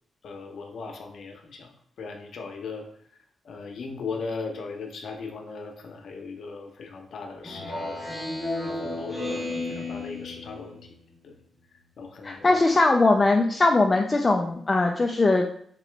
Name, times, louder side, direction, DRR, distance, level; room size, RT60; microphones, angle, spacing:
voice 1, 0.2-2.9 3.4-8.2 8.6-10.8 11.2-11.4 12.0-12.6, left 4 dB, 70° left, 3 dB, 0.7 m, -38 dB
Speech synthesizer, 7.4-11.0, left 2 dB, 5° right, 0.9 m, -33 dB
voice 2, 12.2-15.5, left 2 dB, 30° left, 2 dB, 0.3 m, -20 dB
3.7 x 2.9 x 3.3 m, 0.63 s
cardioid pair, 100°, 0 cm